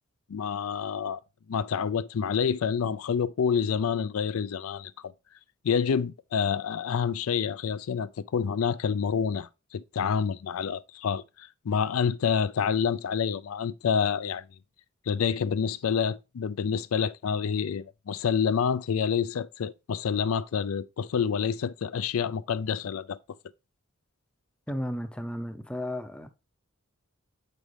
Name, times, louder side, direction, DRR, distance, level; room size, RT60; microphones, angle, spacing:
voice 1, 0.3-1.2 1.5-4.9 5.6-14.4 15.1-23.2, left 6 dB, 80° left, 0.4 m, -28 dB
voice 2, 24.7-26.3, equal, 5° left, 0.5 m, -34 dB
7.2 x 5.4 x 3.2 m
head